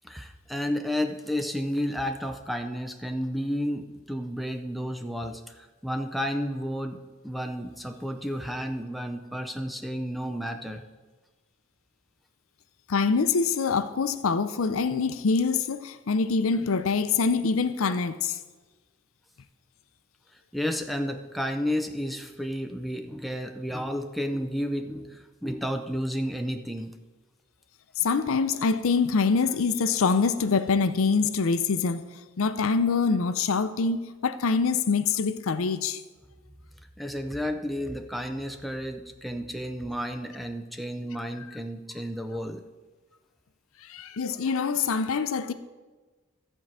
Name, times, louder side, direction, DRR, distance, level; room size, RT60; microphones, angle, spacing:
voice 1, 0.0-10.8 20.5-26.9 37.0-42.6, equal, ahead, 0.4 m, -32 dB
voice 2, 12.9-18.4 28.0-32.0 32.4-36.0 43.8-45.5, left 5 dB, 75° left, 0.5 m, -25 dB
12.5 x 4.6 x 7.3 m
head